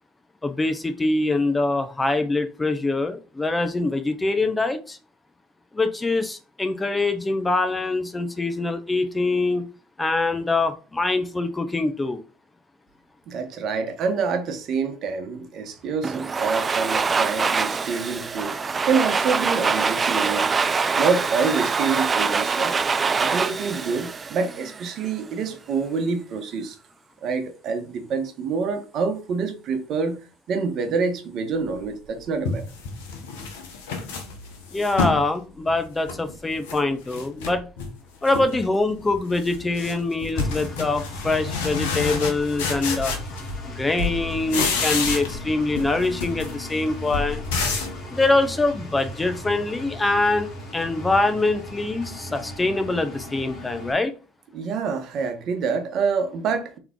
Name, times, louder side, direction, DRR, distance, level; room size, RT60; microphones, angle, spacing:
voice 1, 0.4-5.0 5.7-9.6 10.0-12.2 34.7-37.6 38.2-43.1 43.7-47.4 48.1-54.1, left 2 dB, 20° left, 0.7 m, -24 dB
voice 2, 13.3-18.6 18.8-22.8 23.2-26.8 27.2-32.6 54.5-56.8, right 5 dB, 60° right, 1.0 m, -27 dB
Domestic sounds home sounds, 16.0-25.0, right 5 dB, 30° right, 0.3 m, -24 dB
sound 1, 31.8-31.9 32.4-35.3 35.7-36.8 37.1-37.9 38.2-38.7 39.0-43.7 44.0-45.5 45.7-48.0, left 4 dB, 80° left, 0.8 m, -29 dB
Engine, 40.4-53.9, left 1 dB, 45° left, 1.7 m, -37 dB
3.5 x 3.1 x 3.7 m
hypercardioid pair, 70°, 0 cm